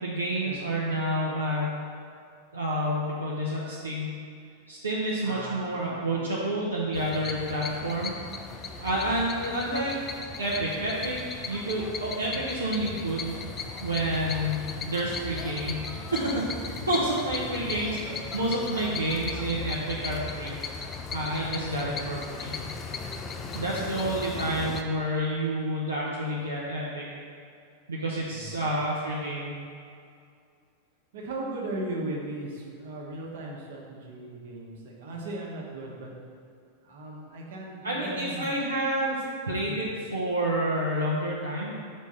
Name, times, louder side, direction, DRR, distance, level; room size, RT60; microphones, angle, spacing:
voice 1, 0.0-1.7 2.5-4.1 4.7-8.1 8.8-9.9 10.4-11.2 11.5-13.5 13.8-15.8 16.1-22.6 23.5-27.1 27.9-29.5 37.8-41.8, right 1 dB, 75° right, -5 dB, 0.7 m, -29 dB
voice 2, 5.2-6.3 17.2-17.6 18.2-18.3 21.6-22.0 23.4-23.8 28.3-28.6 31.1-36.1 36.8-38.6 39.6-39.9, right 1 dB, 60° right, -2 dB, 1.1 m, -38 dB
sound 1, 6.9-24.8, left 4 dB, 25° left, 0.4 m, -37 dB
5.1 x 3.5 x 5.6 m, 2.4 s
figure-of-eight pair, 90°, 0 cm